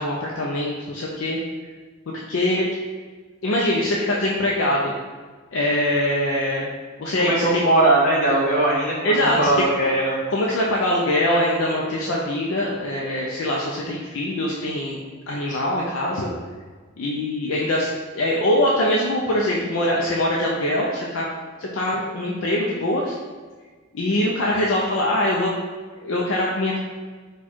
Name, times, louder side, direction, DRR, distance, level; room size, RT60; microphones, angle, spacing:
voice 1, 0.0-1.4 2.1-2.7 3.4-4.9 5.5-6.7 7.0-7.6 9.0-9.6 10.3-15.0 15.3-16.3 17.0-21.2 21.6-23.1 23.9-25.5 26.0-26.8, left 1 dB, 60° left, -4 dB, 0.5 m, -23 dB
voice 2, 7.2-10.2, right 2 dB, 35° left, -6 dB, 1.4 m, -20 dB
4.4 x 2.3 x 4.4 m, 1.4 s
head